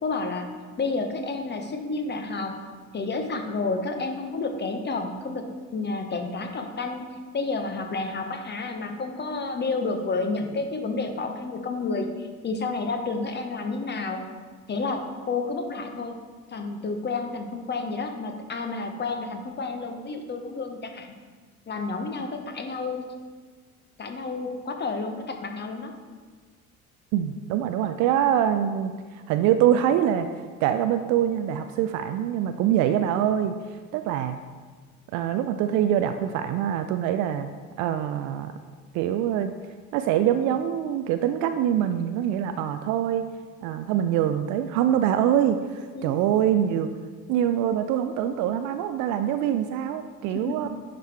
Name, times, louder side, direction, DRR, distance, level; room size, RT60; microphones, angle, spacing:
voice 1, 0.0-0.5 0.8-2.6 2.9-5.4 5.7-7.0 7.3-14.2 14.7-16.1 16.5-21.2 21.7-23.1 24.0-25.9 27.8-27.9 45.9-46.2 50.3-50.7, left 3 dB, 25° left, 5 dB, 1.0 m, -30 dB
voice 2, 27.1-28.9 29.3-30.3 30.6-33.5 33.9-34.4 35.1-37.5 37.8-38.5 38.9-39.5 39.9-43.3 43.6-46.9 47.3-50.7, right 10 dB, 45° right, 9 dB, 0.5 m, -24 dB
10.5 x 5.2 x 3.4 m, 1.5 s
figure-of-eight pair, 60°, 44 cm